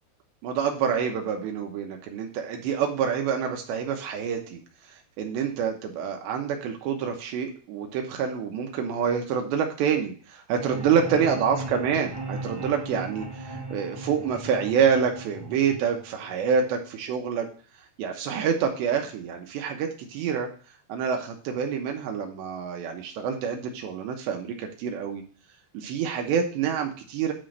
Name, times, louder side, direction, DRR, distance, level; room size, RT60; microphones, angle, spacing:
voice 1, 0.4-4.6 5.2-17.5 18.0-20.5 20.9-25.2 25.7-27.3, right 7 dB, 75° right, 3 dB, 2.8 m, -27 dB
sound 1, 10.6-16.6, right 2 dB, 15° right, 2.4 m, -37 dB
9.9 x 3.8 x 6.3 m, 0.40 s
omnidirectional pair, 6.0 m